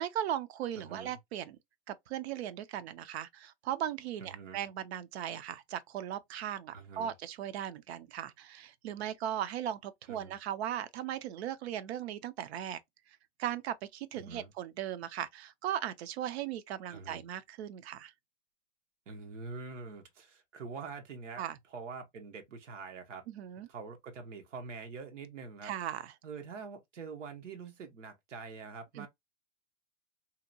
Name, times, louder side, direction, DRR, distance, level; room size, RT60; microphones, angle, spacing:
voice 1, 0.0-1.6 1.9-12.8 13.4-18.1 21.4-21.6 23.3-23.7 25.6-26.1 29.0-29.1, right 10 dB, 60° right, 0.5 m, -38 dB
voice 2, 0.8-1.2 4.2-4.6 6.7-7.1 10.1-10.3 14.2-14.5 16.9-17.2 19.1-21.4 21.7-23.2 23.7-25.7 26.2-29.1, right 4 dB, 90° right, 0.9 m, -45 dB
2.8 x 2.2 x 2.5 m
hypercardioid pair, 130°, 36 cm